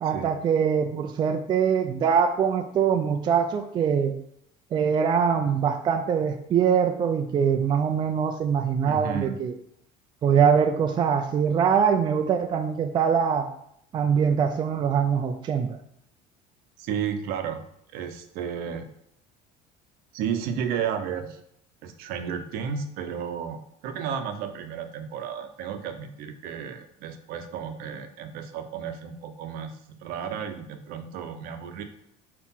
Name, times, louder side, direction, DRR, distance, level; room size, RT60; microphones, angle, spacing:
voice 1, 0.0-4.2 4.7-9.5 10.2-13.5 13.9-15.7, right 7 dB, 30° right, 5 dB, 0.4 m, -23 dB
voice 2, 8.9-9.4 16.8-17.6 17.9-18.9 20.1-21.4 21.8-31.8, right 7 dB, 65° right, 8 dB, 0.8 m, -33 dB
4.7 x 4.5 x 5.6 m, 0.73 s
cardioid pair, 155°, 17 cm